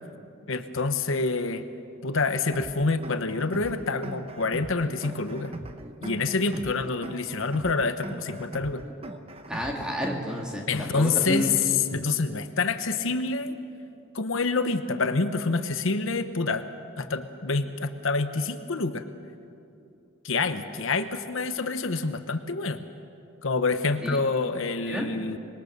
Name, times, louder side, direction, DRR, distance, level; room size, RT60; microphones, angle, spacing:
voice 1, 0.5-1.6 2.0-5.5 6.0-8.8 10.7-13.6 14.1-16.7 17.0-19.0 20.2-22.8 23.4-25.4, left 4 dB, 70° left, 9 dB, 0.9 m, -27 dB
sound 1, 2.5-10.5, right 1 dB, 25° right, 0.9 m, -40 dB
voice 2, 9.5-11.6 24.0-24.2 24.9-25.1, equal, 5° right, 0 dB, 2.5 m, -30 dB
25.0 x 21.5 x 6.7 m, 2.6 s
head